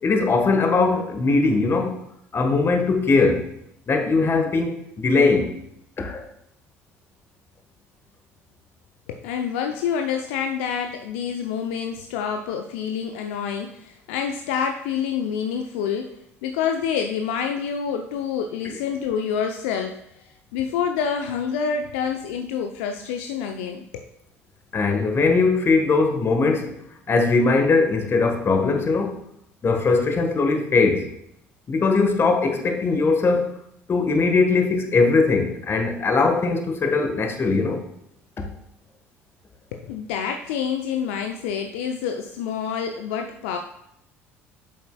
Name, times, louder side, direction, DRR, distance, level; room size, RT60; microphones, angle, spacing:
voice 1, 0.0-2.0 2.3-3.5 3.9-5.6 6.0-6.3 18.6-18.8 24.7-26.7 27.1-29.2 29.6-31.1 31.7-33.5 33.9-37.8 38.4-38.5, left 3 dB, 35° left, 1.3 m, -20 dB
voice 2, 9.1-24.0 39.7-43.6, left 7 dB, 65° left, 0.5 m, -27 dB
8.5 x 7.2 x 2.3 m
figure-of-eight pair, 60°, 7 cm